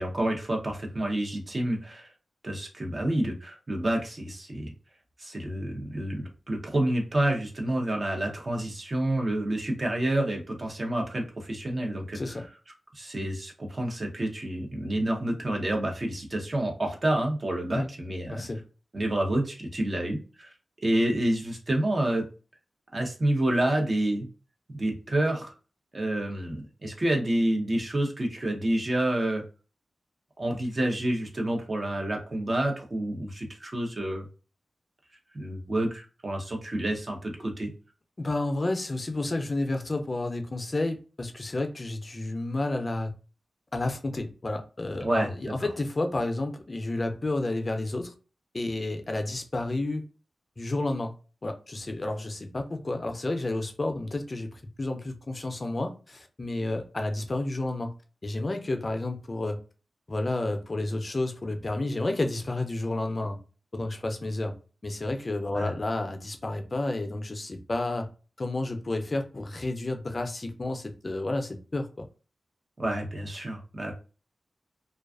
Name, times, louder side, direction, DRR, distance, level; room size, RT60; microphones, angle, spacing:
voice 1, 0.0-2.1 2.4-4.7 5.2-12.4 12.9-18.4 18.9-20.5 20.8-22.3 22.9-24.3 24.7-25.5 25.9-29.4 30.4-34.3 35.3-37.7 45.0-45.5 65.5-65.7 72.8-73.9, right 1 dB, 45° right, 0.7 m, -28 dB
voice 2, 12.1-12.5 17.7-17.9 18.3-18.6 38.2-43.1 43.7-48.1 48.5-50.0 50.6-51.1 51.4-57.9 58.2-59.6 60.1-63.4 63.7-64.5 64.8-68.1 68.4-72.1, left 2 dB, 45° left, 0.4 m, -31 dB
2.4 x 2.3 x 2.3 m
cardioid pair, 55°, 0 cm